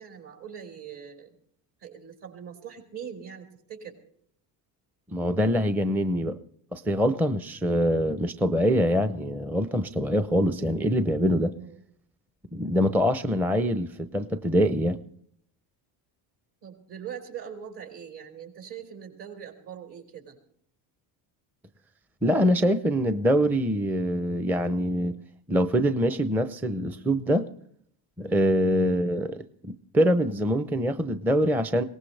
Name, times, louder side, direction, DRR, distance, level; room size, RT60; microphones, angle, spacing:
voice 1, 0.0-1.4 1.8-4.0 11.5-11.8 16.6-20.4 28.7-29.0, right 8 dB, 60° right, 3 dB, 5.0 m, -42 dB
voice 2, 5.1-6.4 6.7-11.5 12.5-15.0 22.2-25.2 25.5-27.4 28.2-31.8, equal, 5° right, 11 dB, 0.5 m, -24 dB
22.5 x 18.0 x 3.3 m, 0.66 s
supercardioid pair, 95°, 49 cm